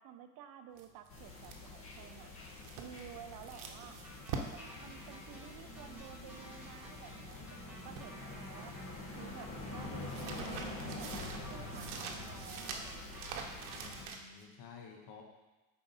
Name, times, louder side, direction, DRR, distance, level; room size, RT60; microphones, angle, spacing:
voice 1, 0.0-2.3 2.8-4.0 4.3-8.8 9.2-13.0, right 9 dB, 50° right, 8 dB, 0.8 m, -52 dB
sound 1, 0.8-7.5 7.7-8.9 9.1-14.4, right 5 dB, 75° right, 1.0 m, -46 dB
sound 2, 1.1-14.1, left 2 dB, 30° left, 1.5 m, -46 dB
sound 3, 4.0-14.1, equal, 5° right, 1.8 m, -55 dB
voice 2, 13.7-15.2, left 6 dB, 50° left, 0 dB, 1.2 m, -53 dB
7.1 x 4.6 x 4.2 m, 1.1 s
supercardioid pair, 110°, 42 cm